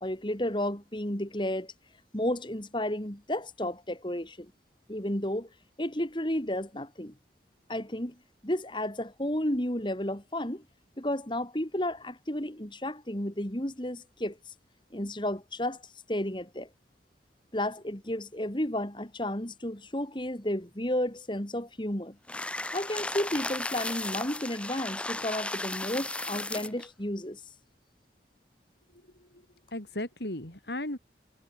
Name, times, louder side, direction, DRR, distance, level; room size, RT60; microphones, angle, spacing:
voice 1, 0.0-1.7 2.1-4.5 4.9-5.5 5.8-7.1 7.7-8.1 8.4-10.6 11.0-14.4 14.9-15.8 16.1-16.7 17.5-22.1 22.7-27.4, left 1 dB, 25° left, 2.9 m, -32 dB
sound 1, 22.3-26.9, left 2 dB, 5° left, 0.6 m, -35 dB
voice 2, 28.9-29.5 29.7-31.0, left 1 dB, 70° left, 4.5 m, -37 dB
head